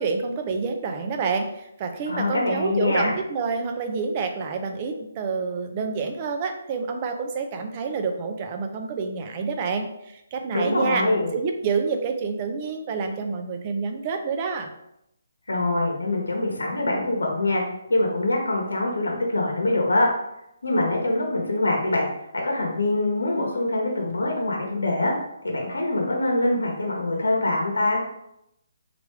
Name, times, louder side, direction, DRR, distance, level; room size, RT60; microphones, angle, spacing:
voice 1, 0.0-11.0 11.3-14.7, right 5 dB, 30° right, 4 dB, 0.4 m, -28 dB
voice 2, 2.1-3.1 10.5-11.3 15.5-17.6 17.9-20.1 20.6-22.1 22.4-25.1 25.4-28.0, left 2 dB, 90° left, 0 dB, 0.9 m, -24 dB
3.2 x 2.4 x 3.1 m, 0.80 s
hypercardioid pair, 155°, 0 cm